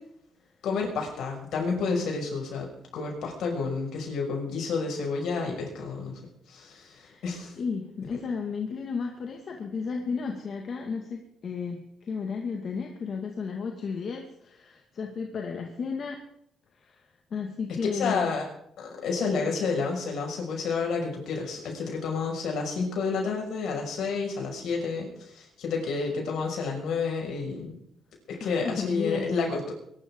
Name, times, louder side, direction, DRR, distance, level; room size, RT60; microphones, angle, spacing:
voice 1, 0.6-6.2 6.5-7.5 17.9-18.4 18.8-27.8 28.3-29.7, left 4 dB, 75° left, 0 dB, 5.9 m, -30 dB
voice 2, 7.6-16.2 16.8-17.0 17.3-18.3 28.4-29.2, left 5 dB, 55° left, 2 dB, 2.0 m, -33 dB
22.0 x 12.5 x 3.8 m, 0.73 s
cardioid pair, 90°, 0 cm